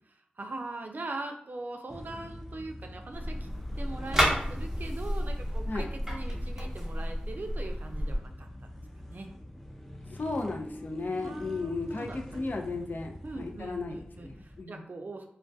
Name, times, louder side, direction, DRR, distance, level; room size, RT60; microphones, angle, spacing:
voice 1, 0.1-3.5 3.8-8.5 9.1-9.3 11.2-12.8 13.2-15.3, right 2 dB, 60° right, 4 dB, 0.4 m, -41 dB
sound 1, 1.9-14.6, equal, 5° left, 0.4 m, -45 dB
sound 2, 3.1-8.2, equal, 10° right, 0.9 m, -31 dB
voice 2, 10.1-14.8, left 3 dB, 65° left, 2 dB, 0.4 m, -35 dB
2.2 x 2.2 x 2.6 m, 0.70 s
cardioid pair, 45°, 3 cm